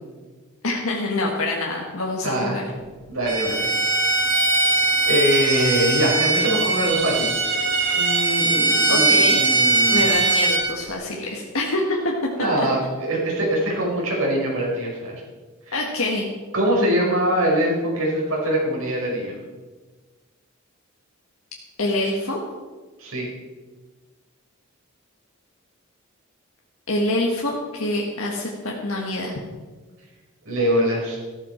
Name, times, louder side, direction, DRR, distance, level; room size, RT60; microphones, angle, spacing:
voice 1, 0.6-2.6 8.9-9.4 9.9-12.1 12.6-12.7 15.7-16.3 21.8-22.4 26.9-29.4, left 2 dB, 80° left, -2 dB, 1.7 m, -25 dB
voice 2, 2.2-2.6 3.1-3.7 5.1-7.3 7.9-10.1 12.3-15.2 15.7-15.8 16.5-19.3 23.0-23.3 30.4-31.2, right 1 dB, 75° right, -3 dB, 4.9 m, -23 dB
Bowed string instrument, 3.3-10.7, right 3 dB, 60° right, 2.5 m, -20 dB
14.5 x 12.5 x 4.5 m, 1.3 s
head